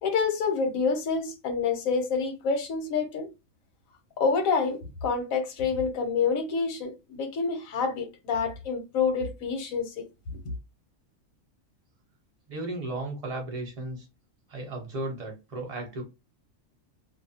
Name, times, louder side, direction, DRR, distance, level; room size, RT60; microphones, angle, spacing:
voice 1, 0.0-3.3 4.2-9.9, left 5 dB, 90° left, 1.2 m, -27 dB
voice 2, 12.5-14.1 14.5-16.0, right 2 dB, 35° right, 0.8 m, -35 dB
2.6 x 2.0 x 2.7 m
omnidirectional pair, 1.4 m